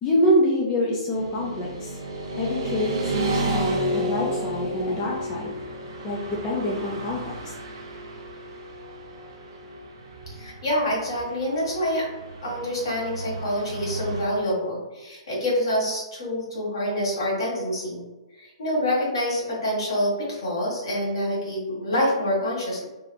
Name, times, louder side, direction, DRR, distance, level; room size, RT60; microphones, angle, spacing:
voice 1, 0.0-2.0 2.3-5.5 6.0-7.5, equal, 20° left, -4 dB, 0.5 m, -26 dB
Motorcycle / Traffic noise roadway noise, 1.1-14.2, right 1 dB, 50° right, 0.8 m, -32 dB
voice 2, 10.3-12.1 12.4-18.0 18.4-22.9, equal, 65° left, -5 dB, 1.5 m, -26 dB
2.9 x 2.4 x 2.2 m, 1.1 s
figure-of-eight pair, 120°, 3 cm